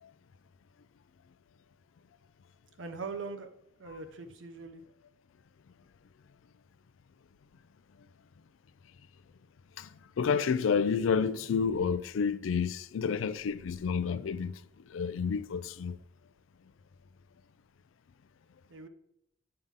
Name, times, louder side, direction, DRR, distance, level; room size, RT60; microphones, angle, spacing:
voice 1, 2.8-3.5 3.8-4.8 18.7-18.9, right 4 dB, 70° right, 0.8 m, -41 dB
voice 2, 10.2-14.6 14.9-16.0, left 6 dB, 80° left, 0.4 m, -30 dB
6.7 x 3.6 x 5.5 m
head